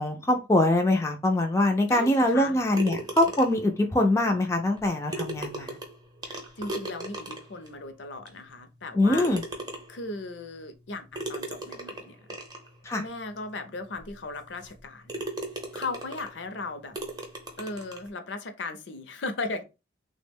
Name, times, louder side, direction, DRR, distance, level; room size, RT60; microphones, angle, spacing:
voice 1, 0.0-5.8 9.0-9.4 12.8-13.0, left 1 dB, 15° left, 0.3 m, -23 dB
voice 2, 1.8-2.6 6.2-9.3 9.9-12.2 12.9-15.3 15.7-17.0 17.6-19.6, left 3 dB, 75° left, 0.6 m, -37 dB
sound 1, 2.8-3.7 4.8-4.9 5.1-7.7 8.3-8.4 9.1-10.1 11.2-12.7 13.4-13.5 14.0-14.1 14.6-14.8 15.1-16.4 16.9-18.1, right 2 dB, 20° right, 0.6 m, -37 dB
3.3 x 2.1 x 3.4 m
head